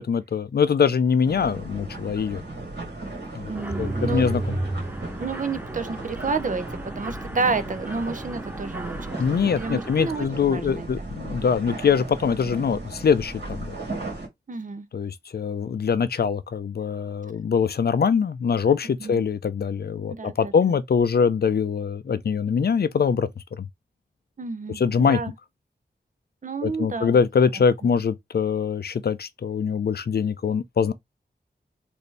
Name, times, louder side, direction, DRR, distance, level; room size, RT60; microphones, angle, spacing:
voice 1, 0.0-2.4 3.3-3.5 3.8-4.6 9.2-13.7 14.9-23.3 23.6-23.7 24.7-25.2 26.6-30.9, left 6 dB, 65° left, 0.5 m, -23 dB
sound 1, 1.2-14.3, right 2 dB, 80° right, 1.8 m, -36 dB
Mechanisms, 3.5-10.3, right 2 dB, 10° right, 0.4 m, -34 dB
voice 2, 3.5-4.2 5.2-9.0 9.4-11.1 14.5-14.9 19.0-19.2 20.1-20.8 24.4-25.3 26.4-27.2 27.6-27.7, right 4 dB, 50° right, 0.7 m, -30 dB
4.2 x 2.7 x 3.3 m
wide cardioid pair, 75°, 17 cm